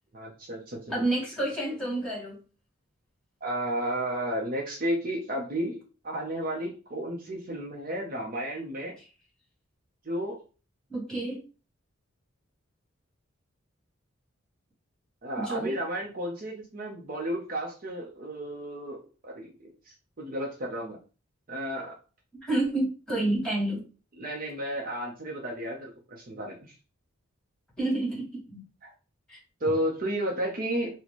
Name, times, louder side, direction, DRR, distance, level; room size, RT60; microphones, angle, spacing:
voice 1, 0.1-0.9 3.4-5.8 6.0-8.9 10.0-10.4 15.2-19.5 19.9-21.0 21.5-21.9 24.1-26.7 29.6-30.9, right 1 dB, 45° right, -1 dB, 0.7 m, -32 dB
voice 2, 0.9-2.4 10.9-11.4 15.4-15.7 22.4-23.8 27.8-28.6 29.3-29.4, right 2 dB, 5° left, -5 dB, 1.9 m, -29 dB
4.1 x 2.2 x 3.0 m, 0.35 s
head